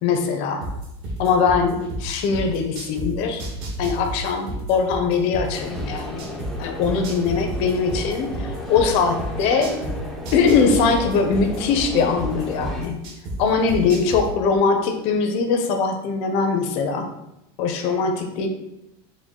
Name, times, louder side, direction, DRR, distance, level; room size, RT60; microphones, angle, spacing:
voice 1, 0.0-0.6 1.2-3.4 3.8-6.2 6.6-9.7 10.3-13.0 13.4-17.1 17.6-18.5, left 5 dB, 50° left, 5 dB, 0.5 m, -21 dB
sound 1, 0.6-3.1 3.4-6.5 6.8-9.9 10.2-13.3 13.7-14.2, right 1 dB, 60° right, 1.3 m, -31 dB
sound 2, 5.5-12.8, left 1 dB, 5° left, 0.4 m, -34 dB
5.1 x 2.2 x 3.6 m, 0.87 s
cardioid pair, 165°, 13 cm